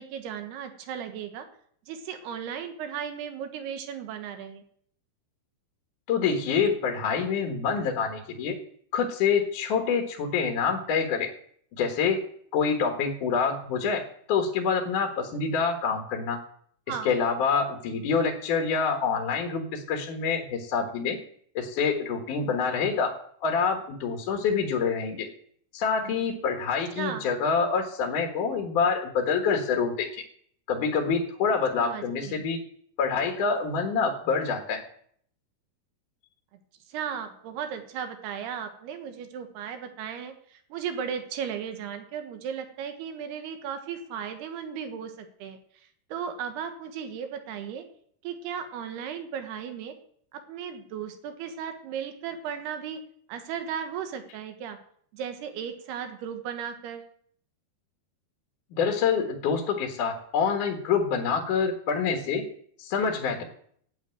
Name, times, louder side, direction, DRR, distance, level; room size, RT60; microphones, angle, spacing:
voice 1, 0.0-1.5 1.9-4.6 16.9-17.1 26.0-26.2 27.0-27.3 31.8-32.4 36.9-45.6 46.1-47.8 48.2-49.9 50.3-53.0 53.3-54.8 55.1-57.0, right 8 dB, 70° right, 7 dB, 3.2 m, -36 dB
voice 2, 6.1-8.6 8.9-11.3 11.7-12.2 12.5-14.0 14.3-16.4 17.0-21.2 21.5-25.3 25.7-30.2 30.7-32.6 33.0-34.8 58.7-62.4 62.8-63.4, left 5 dB, 60° left, 3 dB, 2.5 m, -26 dB
11.0 x 8.6 x 9.0 m, 0.63 s
omnidirectional pair, 4.9 m